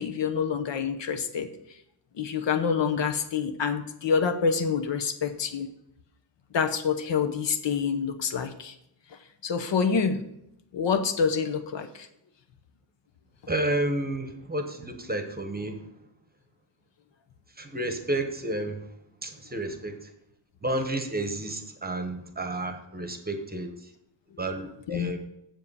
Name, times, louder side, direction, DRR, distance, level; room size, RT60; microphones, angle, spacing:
voice 1, 0.0-1.5 2.2-5.7 6.5-8.7 9.1-10.2 10.7-12.1 24.9-25.1, left 6 dB, 70° left, 7 dB, 1.0 m, -27 dB
voice 2, 13.5-15.9 17.5-20.1 20.6-23.9 24.4-25.2, right 1 dB, 20° right, 6 dB, 0.9 m, -31 dB
7.5 x 7.3 x 5.5 m, 0.80 s
wide cardioid pair, 160°, 46 cm